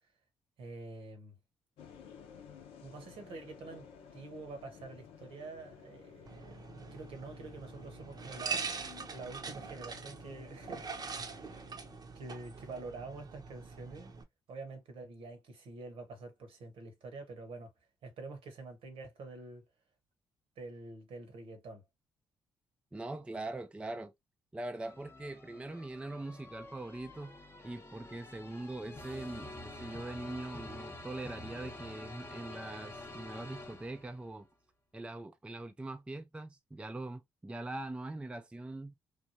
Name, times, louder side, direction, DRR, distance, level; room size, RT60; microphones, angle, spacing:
voice 1, 0.6-1.4 2.8-3.9 4.1-8.7 9.1-10.9 11.1-11.6 12.1-14.2 14.5-17.7 18.0-19.6 20.6-21.8, right 3 dB, 65° right, 1.0 m, -47 dB
sound 1, 1.8-12.0, left 7 dB, 75° left, 0.6 m, -55 dB
sound 2, 6.3-14.2, right 5 dB, 40° right, 0.7 m, -43 dB
voice 2, 22.9-24.1 24.5-27.4 27.6-34.5 34.9-38.9, right 2 dB, 10° right, 0.4 m, -42 dB
sound 3, 24.8-34.3, left 2 dB, 25° left, 0.7 m, -48 dB
3.3 x 2.2 x 2.6 m
hypercardioid pair, 50°, 10 cm